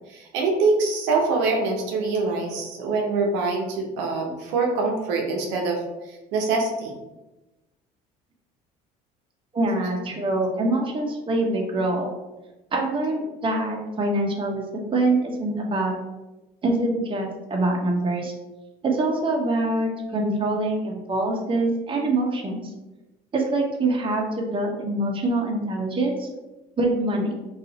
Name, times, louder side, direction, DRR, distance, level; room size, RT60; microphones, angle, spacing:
voice 1, 0.1-6.9, right 3 dB, 75° right, 1 dB, 0.7 m, -24 dB
voice 2, 9.5-12.1 12.7-15.9 16.6-18.3 18.8-22.7 23.3-26.3 26.8-27.4, right 2 dB, 30° right, 0 dB, 0.8 m, -24 dB
2.6 x 2.4 x 3.9 m, 1.0 s
supercardioid pair, 80°, 18 cm